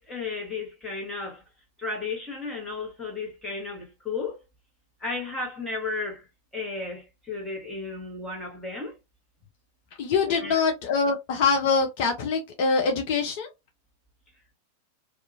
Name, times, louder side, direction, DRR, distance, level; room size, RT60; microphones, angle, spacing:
voice 1, 0.0-1.4 1.8-4.4 5.0-6.3 6.5-8.9 10.3-10.6, left 3 dB, 5° left, 1.3 m, -34 dB
voice 2, 10.0-13.5, left 5 dB, 45° left, 0.5 m, -24 dB
2.6 x 2.4 x 2.6 m
figure-of-eight pair, 90°, 0 cm